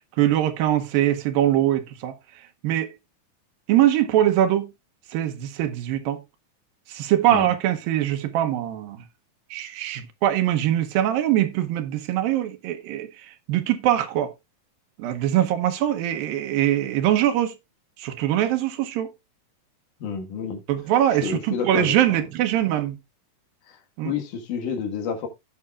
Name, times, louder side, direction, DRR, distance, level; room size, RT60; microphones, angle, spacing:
voice 1, 0.2-2.1 2.6-2.9 3.7-4.7 5.1-6.2 6.9-9.0 9.5-14.3 15.0-17.5 18.0-19.1 20.7-23.0 24.0-24.1, right 12 dB, 85° right, 2.7 m, -22 dB
voice 2, 20.0-20.6 21.2-22.2 23.7-25.3, left 6 dB, 70° left, 3.0 m, -30 dB
16.5 x 5.7 x 2.3 m
omnidirectional pair, 4.0 m